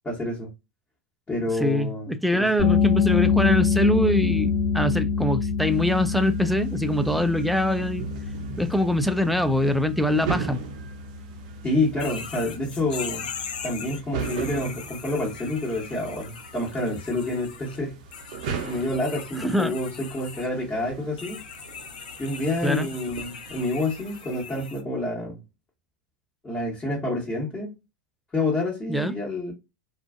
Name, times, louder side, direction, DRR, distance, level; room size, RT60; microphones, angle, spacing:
voice 1, 0.0-0.5 1.3-2.5 11.6-13.3 13.6-18.0 18.6-21.4 22.2-25.4 26.4-27.7 28.3-29.5, left 2 dB, 20° left, 1.1 m, -28 dB
voice 2, 1.6-8.1 8.6-10.6 19.4-19.7 22.6-22.9 28.9-29.1, left 1 dB, ahead, 0.3 m, -23 dB
sound 1, 2.6-14.0, left 6 dB, 45° left, 0.9 m, -26 dB
sound 2, 5.7-24.4, right 6 dB, 60° right, 0.6 m, -39 dB
sound 3, 12.0-17.8 18.1-20.5 21.2-24.8, left 6 dB, 75° left, 0.4 m, -40 dB
2.4 x 2.3 x 2.3 m
hypercardioid pair, 90°, 5 cm